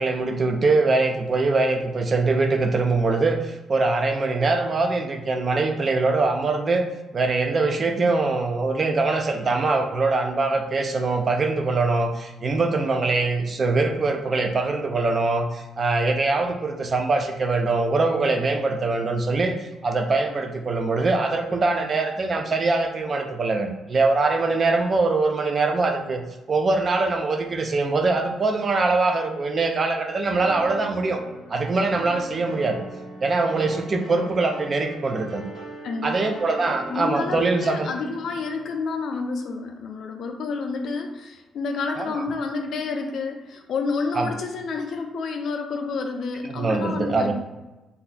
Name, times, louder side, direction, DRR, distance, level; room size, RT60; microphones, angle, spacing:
voice 1, 0.0-6.9 7.1-31.2 31.5-32.8 33.2-35.4 36.0-37.9 42.0-42.1 44.1-44.3 46.4-47.3, right 3 dB, 30° right, 5 dB, 0.3 m, -23 dB
sound 1, 30.4-38.6, right 1 dB, 60° right, 1.0 m, -39 dB
voice 2, 35.8-36.3 36.9-47.3, left 4 dB, 55° left, 4 dB, 0.4 m, -29 dB
2.7 x 2.3 x 3.8 m, 1.1 s
cardioid pair, 150°, 0 cm